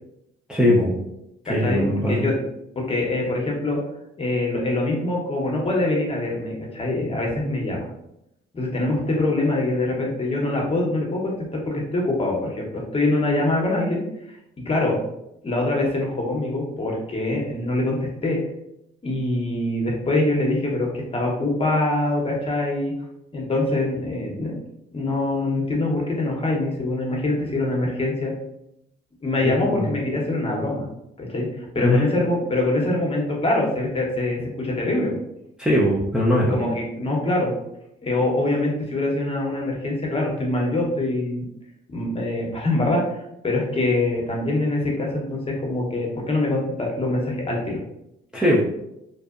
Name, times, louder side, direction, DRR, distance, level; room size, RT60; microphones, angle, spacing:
voice 1, 0.5-0.9 1.5-2.2 29.6-29.9 31.8-32.0 35.6-36.6 48.3-48.6, equal, 5° right, -5 dB, 0.5 m, -20 dB
voice 2, 1.5-2.3 2.9-3.8 4.2-7.9 8.5-14.0 14.6-15.0 15.4-18.4 19.0-22.9 23.3-24.5 24.9-28.3 29.2-30.9 31.2-35.1 36.5-37.5 38.0-41.4 41.9-43.0 43.4-47.8, left 2 dB, 30° left, -1 dB, 0.8 m, -24 dB
2.6 x 2.0 x 2.4 m, 0.82 s
cardioid pair, 90°, 20 cm